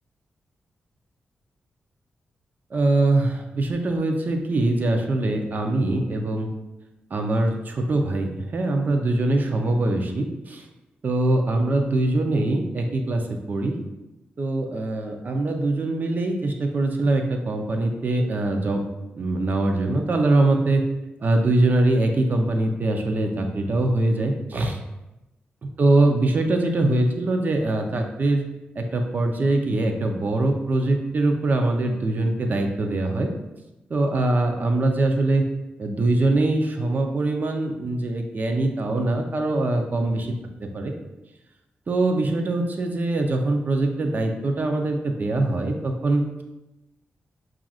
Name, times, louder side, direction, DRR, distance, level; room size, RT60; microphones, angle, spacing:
voice 1, 2.7-6.5 7.1-10.6 11.0-13.8 14.4-18.8 19.1-20.8 21.2-24.8 25.6-28.4 28.8-33.3 33.9-35.5 35.8-40.3 40.6-40.9 41.9-46.4, right 2 dB, 50° right, 4 dB, 0.6 m, -23 dB
5.7 x 2.5 x 2.4 m, 0.98 s
cardioid pair, 70°, 4 cm